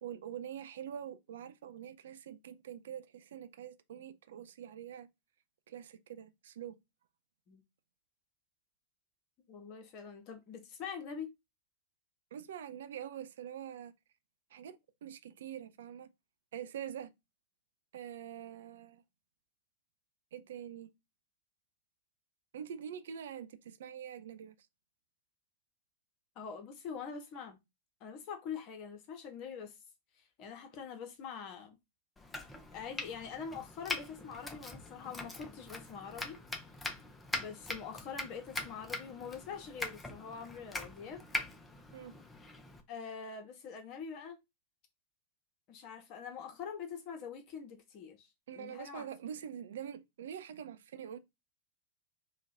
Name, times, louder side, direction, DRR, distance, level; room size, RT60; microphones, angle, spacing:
voice 1, 0.0-5.1 5.7-6.8 12.3-13.9 14.5-16.1 16.5-17.1 17.9-19.0 20.3-20.9 22.5-24.7 41.9-42.1 48.5-51.2, right 9 dB, 60° right, 0.4 m, -45 dB
voice 2, 9.5-11.3 26.4-27.6 28.0-29.8 30.4-31.8 32.7-36.4 37.4-41.2 42.9-44.4 45.7-49.1, left 6 dB, 40° left, 1.0 m, -44 dB
Domestic sounds home sounds, 32.2-42.8, left 2 dB, 10° left, 0.7 m, -42 dB
2.9 x 2.3 x 4.2 m
figure-of-eight pair, 95°, 0 cm